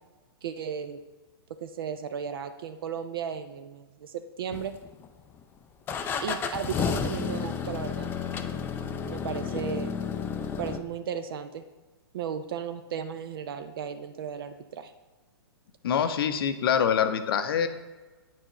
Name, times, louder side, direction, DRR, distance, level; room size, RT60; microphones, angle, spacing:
voice 1, 0.4-1.0 1.6-4.7 6.2-8.1 9.0-10.0 10.5-11.6 12.1-14.9, right 7 dB, 60° right, 9 dB, 0.4 m, -35 dB
sound 1, 4.5-5.2 5.9-10.8, left 7 dB, 15° left, 0.3 m, -31 dB
voice 2, 15.8-17.7, left 8 dB, 65° left, 10 dB, 0.6 m, -25 dB
8.6 x 4.4 x 3.0 m, 1.2 s
hypercardioid pair, 120°, 13 cm